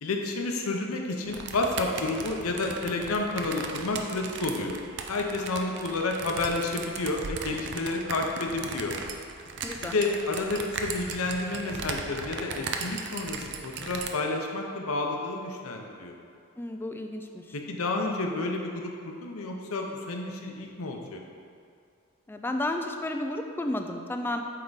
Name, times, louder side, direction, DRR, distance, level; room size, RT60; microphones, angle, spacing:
voice 1, 0.0-4.8 5.1-9.0 9.8-16.2 17.5-21.2, left 2 dB, 90° left, 2 dB, 0.7 m, -30 dB
sound 1, 1.3-14.1, right 5 dB, 55° right, 0.5 m, -37 dB
voice 2, 9.6-9.9 16.6-17.4 22.3-24.4, left 1 dB, 10° left, 4 dB, 0.3 m, -32 dB
8.5 x 3.5 x 4.0 m, 2.4 s
head